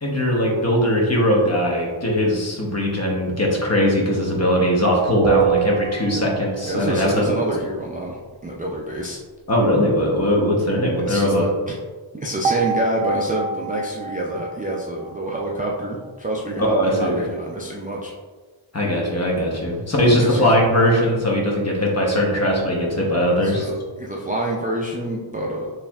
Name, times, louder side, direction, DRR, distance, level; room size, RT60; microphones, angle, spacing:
voice 1, 0.0-7.4 9.5-11.4 16.7-17.3 18.7-23.7, equal, 30° left, -2 dB, 0.9 m, -20 dB
sound 1, 5.2-6.8 12.4-15.8, right 6 dB, 85° right, 0.6 m, -26 dB
voice 2, 6.6-8.2 8.4-9.2 11.0-11.8 12.1-18.1 20.0-20.5 23.4-25.7, right 1 dB, 20° right, -3 dB, 0.3 m, -27 dB
4.3 x 3.2 x 2.3 m, 1.4 s
wide cardioid pair, 115°, 48 cm